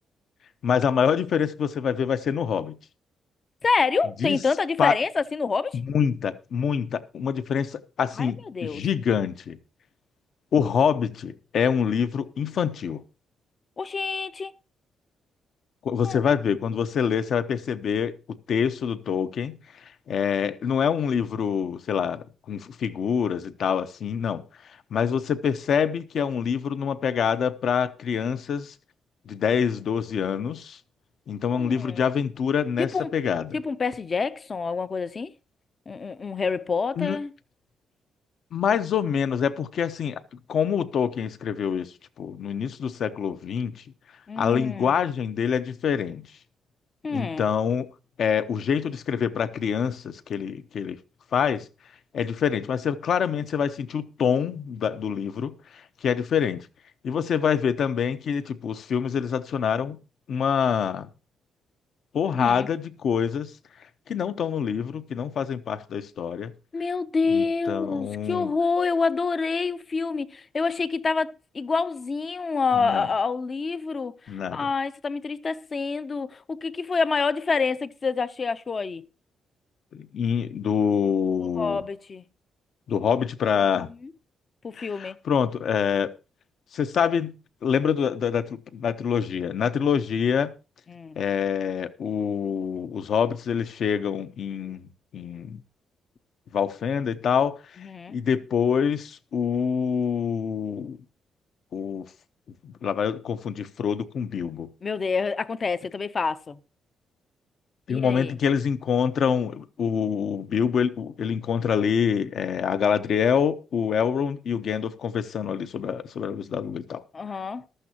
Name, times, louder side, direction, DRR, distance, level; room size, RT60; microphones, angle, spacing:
voice 1, 0.6-2.8 4.2-4.4 4.8-5.0 5.7-9.6 10.5-13.0 15.8-28.7 29.3-30.8 31.3-33.6 37.0-37.2 38.5-40.2 40.5-43.8 44.4-46.3 47.1-47.9 48.2-51.0 51.3-51.7 52.1-56.7 57.0-60.0 60.3-61.1 62.1-63.5 64.1-66.5 67.3-68.5 72.8-73.1 74.3-74.7 79.9-81.8 82.9-83.9 84.8-86.1 86.7-90.5 91.2-95.6 96.5-101.0 101.7-102.1 102.6-104.7 107.9-117.0, left 7 dB, 55° left, 0.9 m, -26 dB
voice 2, 3.6-5.8 8.2-8.8 13.8-14.5 16.0-16.2 31.5-32.0 32.8-33.1 33.5-35.3 35.9-37.3 44.3-45.0 47.0-47.4 62.3-62.7 66.7-79.1 81.6-82.2 83.7-83.8 84.6-85.2 90.9-91.2 97.8-98.2 104.8-106.6 107.9-108.4 117.1-117.6, left 4 dB, 30° left, 0.6 m, -27 dB
14.5 x 12.5 x 2.9 m
cardioid pair, 145°, 0 cm